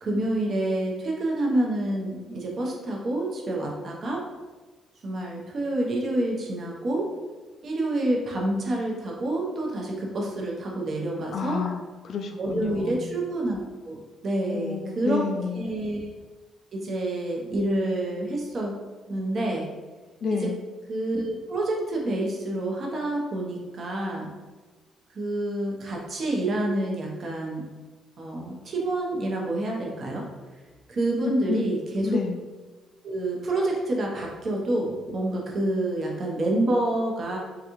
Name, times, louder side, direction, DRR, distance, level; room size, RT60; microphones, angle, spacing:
voice 1, 0.0-4.2 5.0-7.1 7.6-11.6 12.4-14.0 14.2-15.2 15.5-16.1 16.7-18.8 19.1-19.7 20.3-20.5 20.9-24.3 25.1-27.6 28.2-30.2 30.9-32.2 33.0-37.4, right 1 dB, 40° right, -1 dB, 0.8 m, -28 dB
voice 2, 11.3-13.1 14.5-15.7 20.2-20.6 31.5-31.7 32.0-32.4, left 5 dB, 50° left, 5 dB, 0.3 m, -30 dB
3.8 x 3.6 x 3.0 m, 1.3 s
cardioid pair, 160°, 0 cm